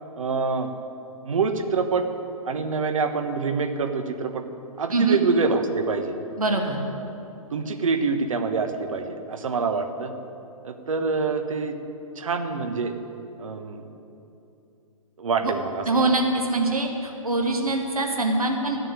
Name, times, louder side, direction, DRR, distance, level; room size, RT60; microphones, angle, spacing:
voice 1, 0.2-0.7 1.2-2.1 2.4-4.4 4.8-6.2 7.5-10.1 10.6-11.8 12.1-12.9 13.4-13.8 15.2-16.1, right 4 dB, 65° right, 6 dB, 1.3 m, -26 dB
voice 2, 6.4-6.8 15.4-15.5 15.9-16.2 16.5-18.8, right 2 dB, 80° right, 2 dB, 1.9 m, -23 dB
14.0 x 6.6 x 9.0 m, 2.8 s
figure-of-eight pair, 120°, 18 cm